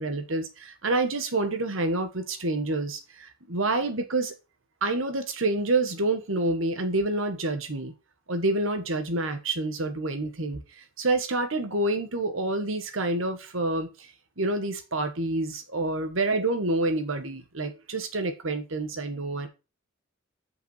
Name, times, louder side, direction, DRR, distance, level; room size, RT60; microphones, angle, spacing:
voice 1, 0.0-4.3 4.8-7.9 8.3-13.9 14.4-19.5, right 2 dB, 85° right, 7 dB, 1.5 m, -28 dB
6.5 x 5.5 x 5.8 m, 0.29 s
head